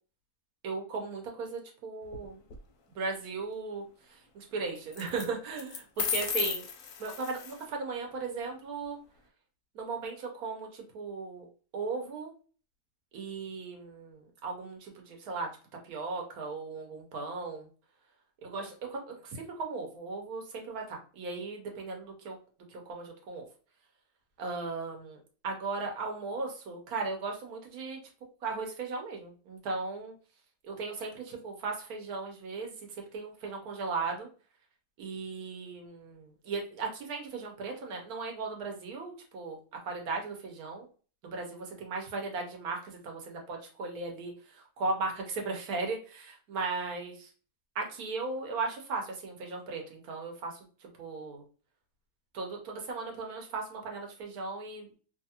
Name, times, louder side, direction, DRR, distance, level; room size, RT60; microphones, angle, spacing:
voice 1, 0.6-2.4 2.9-5.8 6.1-6.6 7.0-9.0 9.7-11.5 11.7-12.3 13.1-15.5 15.8-17.7 18.4-22.4 22.7-23.4 24.4-28.0 28.4-30.1 30.6-34.3 35.0-39.6 39.8-40.9 41.2-47.3 47.7-51.4 52.3-54.9, right 4 dB, 70° right, 2 dB, 1.3 m, -37 dB
sound 1, 2.0-2.6 4.9-5.3 5.6-7.6, left 7 dB, 65° left, 0.8 m, -34 dB
3.0 x 2.4 x 2.8 m, 0.39 s
omnidirectional pair, 1.7 m